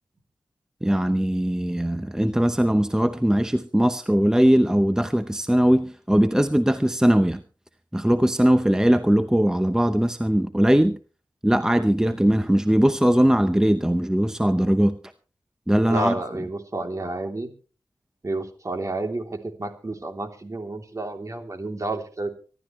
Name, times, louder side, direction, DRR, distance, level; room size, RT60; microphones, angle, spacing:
voice 1, 0.8-7.4 7.9-11.0 11.4-14.9 15.7-16.1, equal, 5° right, 10 dB, 0.8 m, -20 dB
voice 2, 15.8-17.5 18.2-22.3, right 2 dB, 40° right, 4 dB, 3.1 m, -30 dB
25.0 x 12.0 x 3.2 m, 0.37 s
wide cardioid pair, 105°, 8 cm